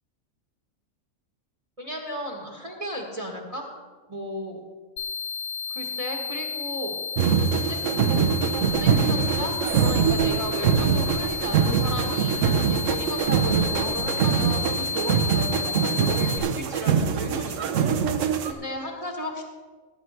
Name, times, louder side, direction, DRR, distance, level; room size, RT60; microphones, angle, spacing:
voice 1, 1.8-3.6 4.1-4.6 5.7-7.0 7.5-7.9 8.5-19.4, equal, 30° right, 0 dB, 1.3 m, -35 dB
sound 1, 5.0-16.4, left 6 dB, 80° left, 1.4 m, -32 dB
sound 2, 7.2-18.5, right 7 dB, 75° right, 1.1 m, -23 dB
sound 3, 8.6-14.0, left 1 dB, 45° left, 1.6 m, -43 dB
17.5 x 9.4 x 3.3 m, 1.4 s
omnidirectional pair, 1.4 m